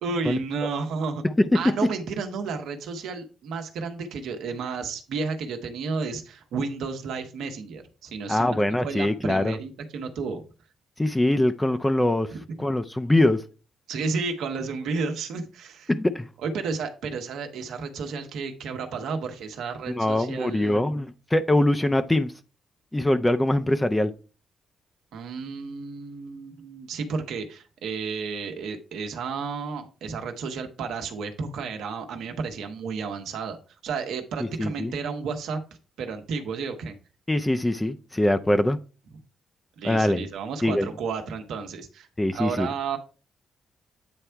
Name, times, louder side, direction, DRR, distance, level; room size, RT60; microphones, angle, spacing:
voice 1, 0.0-1.2 1.5-10.4 12.3-12.6 13.9-15.9 16.4-20.8 25.1-33.6 33.8-35.6 36.0-36.9 39.8-43.0, right 5 dB, 75° right, 5 dB, 1.1 m, -32 dB
voice 2, 8.3-9.6 11.0-12.3 12.6-13.4 15.9-16.3 19.9-22.3 22.9-24.1 34.4-34.9 37.3-38.8 39.8-40.2 40.6-40.9 42.2-42.7, left 1 dB, 15° left, 9 dB, 0.6 m, -23 dB
8.9 x 3.3 x 4.6 m, 0.35 s
hypercardioid pair, 45°, 0 cm